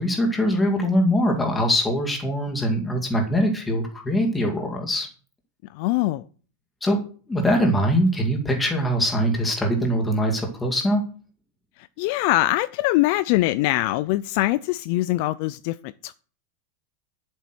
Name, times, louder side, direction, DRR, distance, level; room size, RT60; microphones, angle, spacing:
voice 1, 0.0-5.1 6.8-7.0 7.3-11.0, equal, 10° left, 2.2 m, -22 dB
voice 2, 5.7-6.2 11.8-16.2, left 17 dB, 45° left, 0.4 m, -23 dB
10.0 x 7.9 x 6.1 m
supercardioid pair, 175°, 0 cm